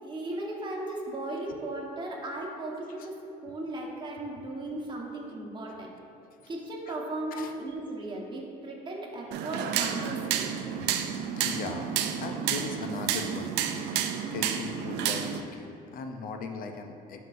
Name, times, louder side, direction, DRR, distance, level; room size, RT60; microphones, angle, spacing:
voice 1, 0.0-3.2 3.4-5.9 6.5-10.6, right 2 dB, 25° right, -2 dB, 1.2 m, -36 dB
sound 1, 9.3-15.4, right 9 dB, 80° right, 0.4 m, -30 dB
voice 2, 11.3-11.9 12.2-13.5 14.3-17.2, left 4 dB, 55° left, 5 dB, 0.6 m, -38 dB
10.5 x 3.8 x 2.6 m, 2.8 s
cardioid pair, 110°, 17 cm